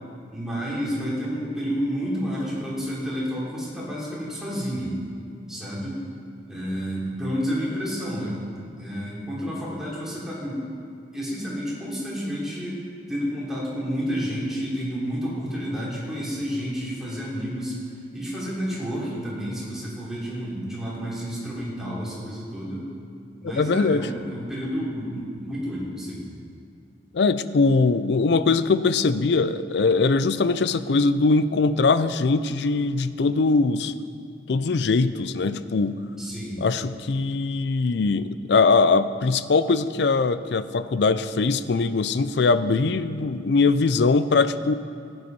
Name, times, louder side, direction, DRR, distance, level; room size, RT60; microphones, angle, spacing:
voice 1, 0.3-5.0 5.5-6.0 6.5-8.4 8.8-10.7 11.1-17.8 18.1-22.9 23.4-26.3 36.1-36.6, equal, 5° right, -7 dB, 3.2 m, -30 dB
voice 2, 23.4-24.1 27.1-33.9 34.5-36.0 36.6-44.7, left 4 dB, 65° left, 13 dB, 0.5 m, -21 dB
16.5 x 8.0 x 5.4 m, 2.4 s
head